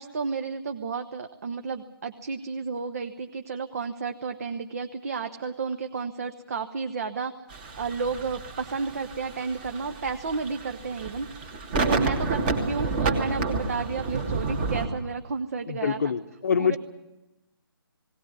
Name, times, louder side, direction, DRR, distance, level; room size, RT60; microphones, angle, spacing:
voice 1, 0.0-7.3 7.8-11.3 11.9-16.0 16.6-16.8, right 4 dB, 40° right, 7 dB, 0.9 m, -32 dB
sound 1, 7.5-14.9, right 3 dB, 25° right, 1.9 m, -30 dB
voice 2, 15.7-16.8, left 6 dB, 45° left, 11 dB, 0.9 m, -25 dB
18.5 x 18.0 x 9.6 m, 0.98 s
figure-of-eight pair, 145°, 13 cm